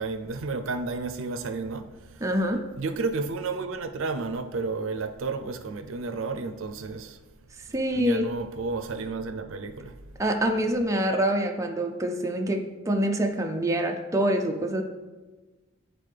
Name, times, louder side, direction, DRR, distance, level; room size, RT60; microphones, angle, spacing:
voice 1, 0.0-2.3 2.8-7.2 7.9-10.0, right 3 dB, 75° right, 7 dB, 0.5 m, -32 dB
voice 2, 2.2-2.7 7.7-8.2 10.2-14.8, right 1 dB, 15° right, 3 dB, 0.4 m, -25 dB
9.1 x 4.1 x 3.3 m, 1.2 s
head